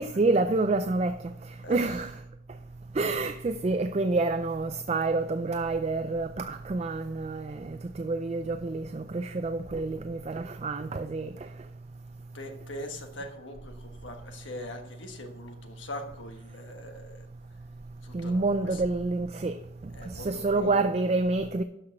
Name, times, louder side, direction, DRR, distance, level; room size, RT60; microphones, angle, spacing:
voice 1, 0.0-2.2 2.9-11.5 18.1-19.6 20.0-21.6, right 3 dB, 30° right, 0.3 m, -28 dB
voice 2, 12.3-17.3 18.0-18.4 18.7-18.8 20.0-20.7, left 1 dB, 75° left, 1.4 m, -42 dB
12.5 x 5.9 x 4.5 m
head